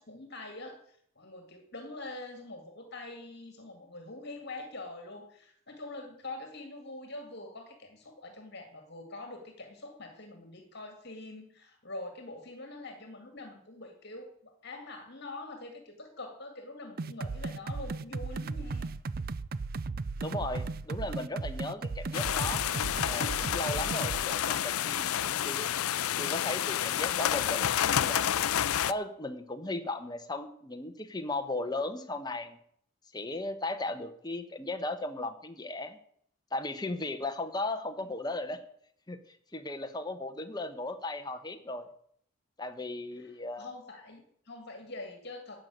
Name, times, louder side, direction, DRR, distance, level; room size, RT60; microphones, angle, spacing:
voice 1, 0.0-18.9 43.2-45.6, left 2 dB, 50° left, 5 dB, 2.1 m, -44 dB
sound 1, 17.0-24.2, right 3 dB, 45° right, 0.4 m, -36 dB
voice 2, 20.2-22.6 23.0-25.7 26.2-28.3 28.9-32.6 33.1-36.0 36.5-38.6 39.1-39.2 39.5-41.9 42.6-43.7, left 2 dB, 20° left, 7 dB, 1.1 m, -36 dB
sound 2, 22.1-28.9, left 10 dB, 85° left, 0.5 m, -29 dB
12.0 x 7.7 x 9.2 m, 0.67 s
head